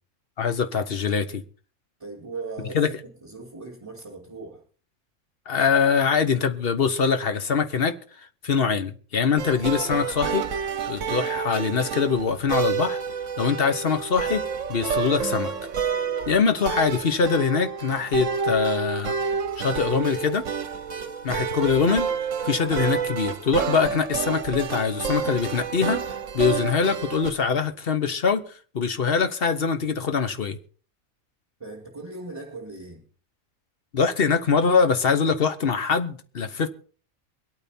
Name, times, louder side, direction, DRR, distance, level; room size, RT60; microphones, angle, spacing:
voice 1, 0.4-1.4 2.7-2.9 5.5-10.4 10.9-13.0 13.4-14.4 14.7-15.5 16.3-19.1 19.6-20.4 21.2-22.1 22.4-28.4 28.7-30.6 33.9-36.7, left 5 dB, 45° left, 1.1 m, -23 dB
voice 2, 2.0-4.6 31.6-33.0, right 3 dB, 15° right, 5.0 m, -38 dB
sound 1, 9.4-27.3, right 6 dB, 60° right, 1.2 m, -29 dB
23.5 x 8.8 x 4.4 m
omnidirectional pair, 1.5 m